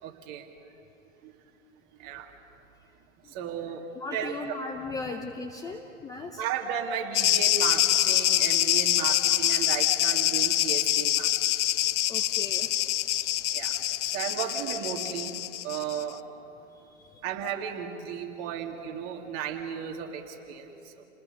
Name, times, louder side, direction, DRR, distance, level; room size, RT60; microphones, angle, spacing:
voice 1, 0.0-0.5 1.2-1.3 2.0-2.3 3.3-4.3 5.1-5.2 5.6-5.8 6.4-11.3 13.1-13.8 14.1-15.4 15.6-16.2 17.2-21.0, right 8 dB, 35° right, 2 dB, 2.4 m, -35 dB
voice 2, 4.0-6.4 12.1-12.7 16.7-17.2, left 3 dB, 10° left, 4 dB, 0.7 m, -38 dB
sound 1, 7.1-16.0, left 13 dB, 60° left, 0.6 m, -25 dB
30.0 x 20.5 x 5.3 m, 2.9 s
hypercardioid pair, 125°, 40 cm